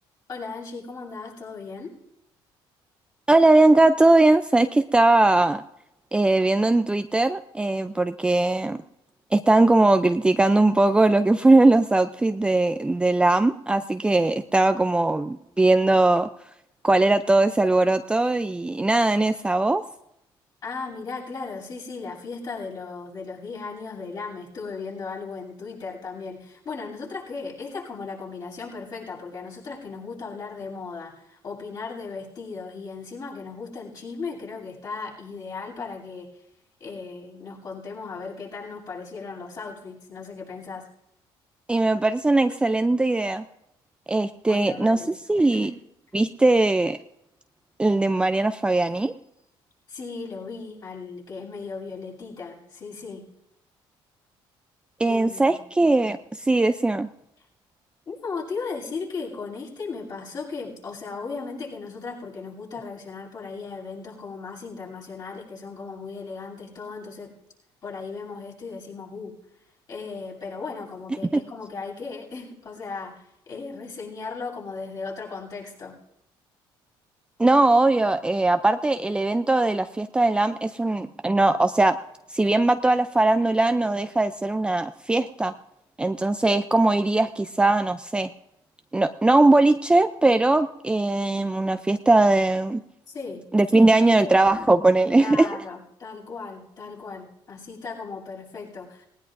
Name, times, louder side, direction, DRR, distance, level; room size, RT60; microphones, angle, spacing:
voice 1, 0.3-2.0 20.6-36.3 36.8-40.9 44.5-45.7 49.9-53.3 55.0-55.6 58.0-67.3 67.8-69.3 69.9-76.0 93.1-93.4 93.7-94.7 95.1-99.0, left 4 dB, 45° left, -3 dB, 7.6 m, -36 dB
voice 2, 3.3-5.6 6.1-8.8 9.3-16.3 16.8-19.8 41.7-43.4 44.1-45.0 45.3-45.7 46.1-47.0 47.8-49.1 55.0-57.1 71.3-71.4 77.4-82.0 82.3-85.5 86.0-88.3 88.9-92.8 93.5-95.6, right 2 dB, 10° right, 9 dB, 0.5 m, -20 dB
19.0 x 19.0 x 2.6 m, 0.82 s
cardioid pair, 105°, 10 cm